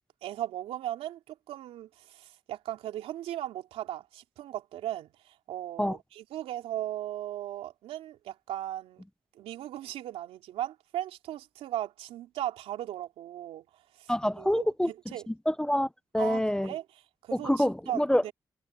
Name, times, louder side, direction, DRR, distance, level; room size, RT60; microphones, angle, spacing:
voice 1, 0.2-9.0 9.3-13.6 14.0-14.1 14.4-15.2 16.2-16.8 17.2-18.3, right 13 dB, 85° right, 3.1 m, -37 dB
voice 2, 14.1-14.9 15.3-15.9 16.1-16.7 17.4-18.3, equal, 5° left, 0.9 m, -26 dB
hypercardioid pair, 40°, 10 cm